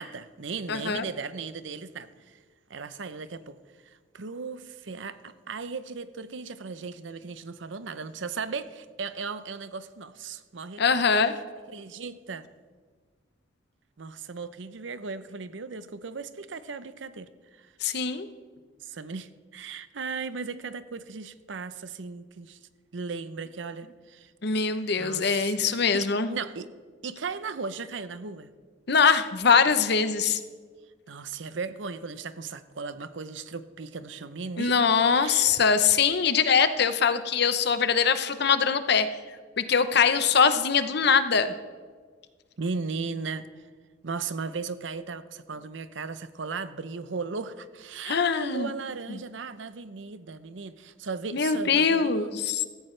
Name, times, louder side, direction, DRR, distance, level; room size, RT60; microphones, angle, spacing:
voice 1, 0.0-2.4 2.7-3.6 3.8-10.8 11.7-12.5 14.0-17.7 18.8-22.6 22.9-24.3 25.0-26.7 27.0-28.5 31.1-34.8 35.1-35.5 42.6-43.5 44.0-52.3, right 4 dB, 75° right, 13 dB, 0.7 m, -37 dB
voice 2, 0.7-1.0 10.8-11.3 17.8-18.3 24.4-26.3 28.9-30.4 34.6-39.1 39.6-41.5 48.1-48.7 49.1-49.2 51.3-52.6, left 6 dB, 60° left, 11 dB, 0.8 m, -23 dB
16.5 x 14.5 x 3.3 m, 1.5 s
head